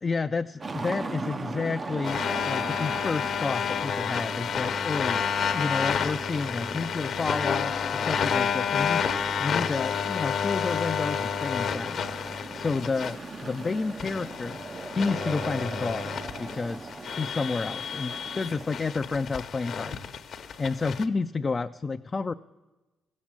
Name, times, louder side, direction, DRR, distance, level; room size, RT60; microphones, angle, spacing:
voice 1, 0.0-5.3 5.5-9.0 9.4-12.0 12.5-14.6 14.9-20.1 20.6-22.3, left 4 dB, 30° left, 6 dB, 0.3 m, -30 dB
sound 1, 0.6-18.7, right 3 dB, 35° right, 0.5 m, -40 dB
sound 2, 2.0-21.0, left 7 dB, 60° left, 0.8 m, -30 dB
15.5 x 7.3 x 8.7 m, 1.1 s
cardioid pair, 90°, 0 cm